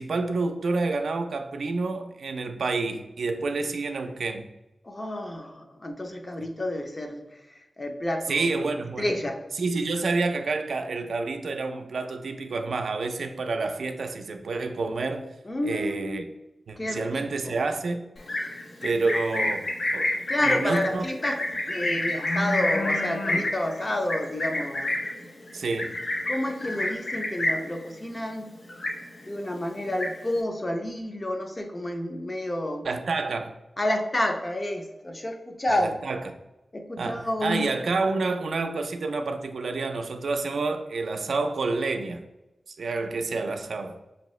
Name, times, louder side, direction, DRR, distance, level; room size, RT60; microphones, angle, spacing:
voice 1, 0.0-4.5 8.3-9.1 9.5-15.3 15.6-16.3 16.7-18.0 18.8-19.6 19.9-21.1 21.8-22.1 25.5-25.9 32.8-33.6 35.7-36.3 37.0-42.2 42.7-44.0, right 3 dB, 80° right, 5 dB, 0.4 m, -29 dB
voice 2, 4.8-7.2 7.8-8.4 9.0-9.4 15.5-16.2 16.8-17.6 20.3-21.4 21.7-25.0 26.3-28.5 29.2-32.9 33.8-35.9 36.7-37.7, left 1 dB, 25° left, 4 dB, 0.5 m, -29 dB
Livestock farm animals working animals, 18.2-27.8 28.1-28.4 28.7-29.4 29.7-30.4, left 1 dB, 75° left, 0.7 m, -28 dB
5.4 x 2.8 x 3.0 m, 0.96 s
wide cardioid pair, 135°, 0 cm